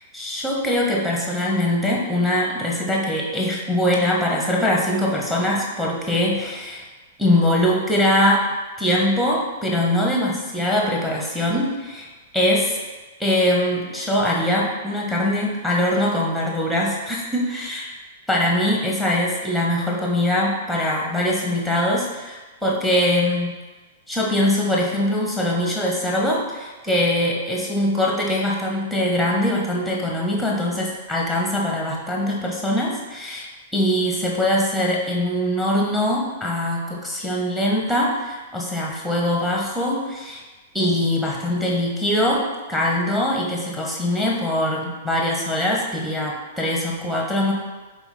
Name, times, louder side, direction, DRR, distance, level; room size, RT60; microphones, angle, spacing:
voice 1, 0.1-6.8 7.2-8.4 8.8-12.1 12.3-12.8 13.2-17.8 18.3-23.5 24.1-33.5 33.7-40.4 40.7-47.5, left 1 dB, ahead, -2 dB, 0.9 m, -22 dB
4.2 x 2.9 x 4.2 m, 1.2 s
figure-of-eight pair, 105°, 0 cm